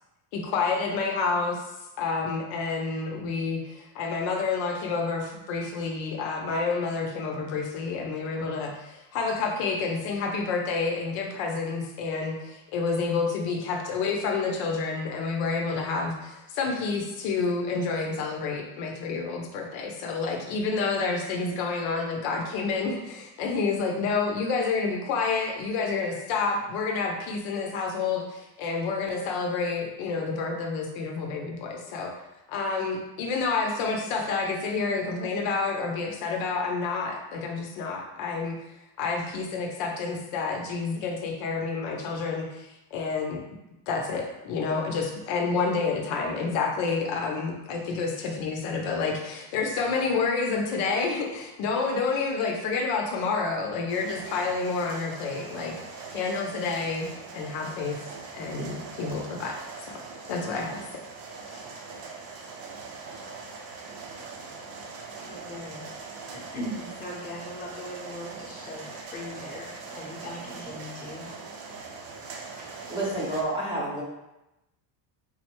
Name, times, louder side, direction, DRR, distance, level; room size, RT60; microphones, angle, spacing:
voice 1, 0.3-1.6 2.0-32.1 32.5-38.6 39.0-43.4 43.9-55.7 56.1-57.1 57.3-58.0 58.3-59.6 59.9-60.0 60.3-60.8 61.5-61.6, left 4 dB, 65° left, 1 dB, 0.8 m, -29 dB
sound 1, 53.9-73.4, right 4 dB, 60° right, 0.8 m, -42 dB
voice 2, 65.1-65.9 66.3-71.3, left 1 dB, 15° left, -4 dB, 0.9 m, -39 dB
voice 3, 72.9-74.0, right 2 dB, 10° right, -7 dB, 0.6 m, -29 dB
3.9 x 2.1 x 4.4 m, 0.95 s
cardioid pair, 145°, 49 cm